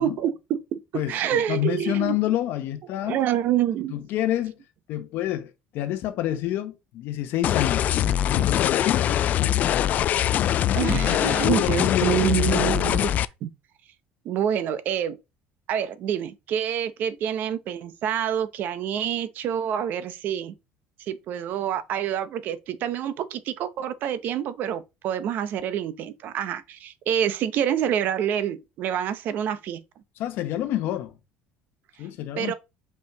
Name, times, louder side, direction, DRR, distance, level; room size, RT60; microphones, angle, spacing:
voice 1, 0.0-0.8 1.1-2.2 3.0-4.0 10.7-13.1 13.4-13.5 14.2-15.2 15.7-20.5 21.0-29.8 32.4-32.5, right 10 dB, 45° right, 0.9 m, -27 dB
voice 2, 0.9-3.2 3.9-4.6 4.9-7.8 8.2-9.9 11.4-12.2 30.2-31.1 32.0-32.5, left 13 dB, 55° left, 1.0 m, -28 dB
sound 1, 7.4-13.2, left 11 dB, 40° left, 0.4 m, -23 dB
5.7 x 4.5 x 5.9 m
cardioid pair, 165°, 4 cm